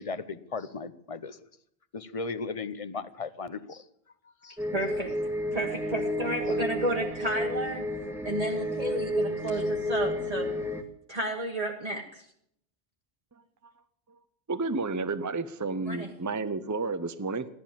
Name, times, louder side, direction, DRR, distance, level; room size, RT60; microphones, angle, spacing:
voice 1, 0.0-1.4 1.9-3.8 4.4-4.6, left 4 dB, 35° left, 14 dB, 0.8 m, -36 dB
sound 1, 4.6-10.8, left 1 dB, ahead, 1.3 m, -31 dB
voice 2, 4.7-5.1 5.5-7.8 8.2-10.5 11.1-12.2 15.9-16.1, right 1 dB, 40° right, -1 dB, 1.4 m, -32 dB
voice 3, 14.5-17.5, right 3 dB, 20° right, 11 dB, 0.6 m, -31 dB
15.5 x 11.5 x 7.3 m, 0.73 s
omnidirectional pair, 1.0 m